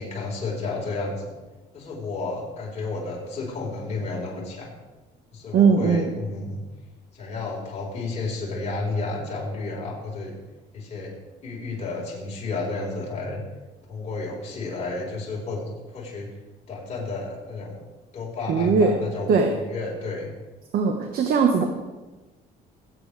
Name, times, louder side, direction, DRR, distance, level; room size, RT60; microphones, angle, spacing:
voice 1, 0.0-1.3 1.7-4.7 5.3-6.6 7.1-10.3 10.7-11.1 11.4-13.4 13.9-16.3 16.7-17.8 18.1-20.3, left 3 dB, 40° left, -4 dB, 4.8 m, -31 dB
voice 2, 5.5-6.1 18.5-19.0 19.3-19.5 20.7-21.6, right 5 dB, 60° right, 4 dB, 1.4 m, -19 dB
21.5 x 8.6 x 3.5 m, 1.2 s
cardioid pair, 110°, 17 cm